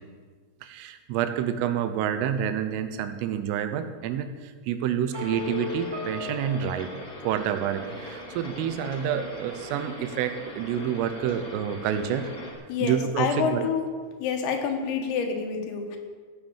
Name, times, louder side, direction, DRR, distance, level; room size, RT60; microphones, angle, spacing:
voice 1, 0.6-6.9 7.2-12.3 12.8-13.7, right 9 dB, 80° right, 9 dB, 3.3 m, -28 dB
sound 1, 5.1-12.5, left 1 dB, 40° left, 2.5 m, -41 dB
sound 2, 5.1-8.1, left 3 dB, 45° right, 1.6 m, -37 dB
voice 2, 12.7-13.8 14.2-16.0, left 6 dB, 80° left, 3 dB, 4.2 m, -27 dB
16.0 x 7.2 x 7.1 m, 1.5 s
omnidirectional pair, 6.0 m